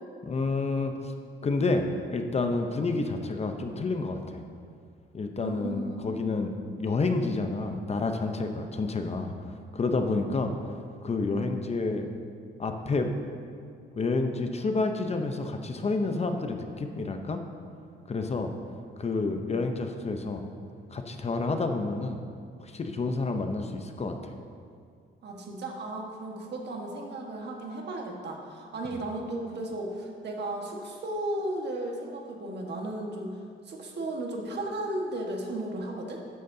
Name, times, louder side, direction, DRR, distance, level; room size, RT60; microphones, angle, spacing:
voice 1, 0.3-1.0 1.4-4.4 5.1-9.3 9.7-10.5 11.0-12.1 12.6-13.1 14.0-17.4 18.1-18.5 19.0-20.4 20.9-22.2 22.6-24.3, left 3 dB, 30° left, 5 dB, 0.7 m, -29 dB
voice 2, 5.4-6.1 25.2-33.4 33.7-36.2, right 1 dB, 60° right, 1 dB, 1.5 m, -35 dB
12.5 x 9.3 x 2.7 m, 2.3 s
cardioid pair, 90°, 20 cm